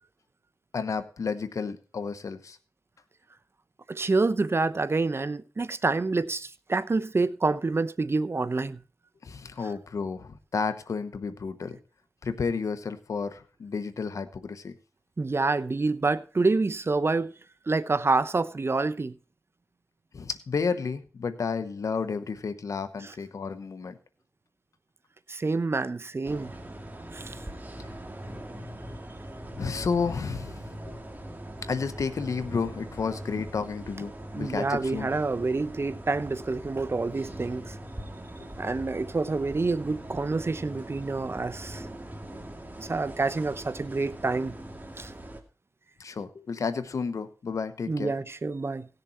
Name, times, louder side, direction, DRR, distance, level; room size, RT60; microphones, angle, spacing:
voice 1, 0.7-2.6 9.2-11.8 12.2-14.8 20.1-24.0 29.5-31.0 31.6-35.1 38.4-38.5 46.0-48.1, left 5 dB, 85° left, 1.0 m, -31 dB
voice 2, 3.9-8.8 15.2-17.3 17.7-19.1 23.0-23.1 25.3-26.5 27.1-27.4 34.3-37.7 38.6-41.9 42.8-44.6 45.0-45.1 47.9-48.9, right 3 dB, 50° right, 0.8 m, -27 dB
sound 1, 26.2-45.4, right 1 dB, 30° right, 2.4 m, -41 dB
17.5 x 6.8 x 4.3 m
cardioid pair, 40°, 5 cm